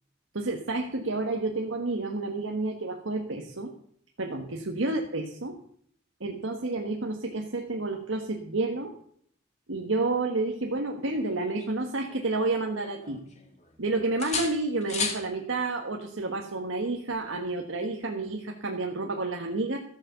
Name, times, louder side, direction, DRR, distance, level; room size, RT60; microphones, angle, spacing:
voice 1, 0.3-3.7 4.2-5.6 6.2-8.9 9.7-13.2 13.8-19.8, right 3 dB, 85° right, 2 dB, 1.5 m, -30 dB
sound 1, 11.1-12.6 13.0-13.8 14.2-15.3 17.1-17.3, left 5 dB, 35° left, 2.6 m, -35 dB
14.0 x 8.5 x 6.8 m, 0.64 s
head